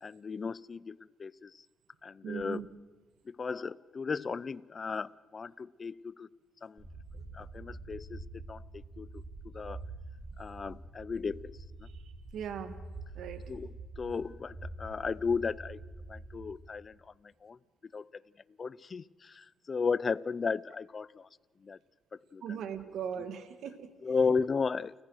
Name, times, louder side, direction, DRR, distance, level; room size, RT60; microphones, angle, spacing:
voice 1, 0.0-1.6 2.0-2.6 3.3-6.3 6.6-6.8 7.3-8.2 8.5-9.2 9.5-9.8 10.4-11.5 11.8-11.9 13.5-15.8 16.1-17.6 17.9-18.2 18.6-21.3 21.6-21.8 22.3-22.6 24.0-24.9, left 5 dB, 40° left, 22 dB, 0.5 m, -35 dB
voice 2, 2.2-2.7 7.1-7.2 11.9-12.7 13.1-13.4 22.4-23.9, right 8 dB, 75° right, 11 dB, 1.7 m, -39 dB
Underwater ambience, 6.8-16.5, right 2 dB, 40° right, 5.3 m, -46 dB
29.5 x 15.0 x 6.3 m, 1.4 s
cardioid pair, 90°, 0 cm